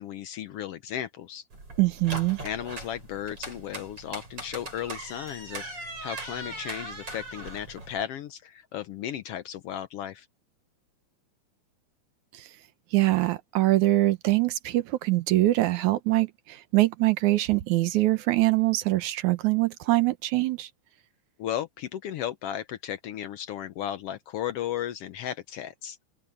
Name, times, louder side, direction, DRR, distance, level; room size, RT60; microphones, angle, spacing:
voice 1, 0.0-1.4 2.4-10.3 21.4-26.0, left 10 dB, 80° left, 1.4 m, -35 dB
sound 1, 1.5-8.0, right 2 dB, 45° right, 8.1 m, -40 dB
voice 2, 1.8-2.4 12.9-20.7, right 18 dB, 75° right, 2.3 m, -23 dB
omnidirectional pair, 3.6 m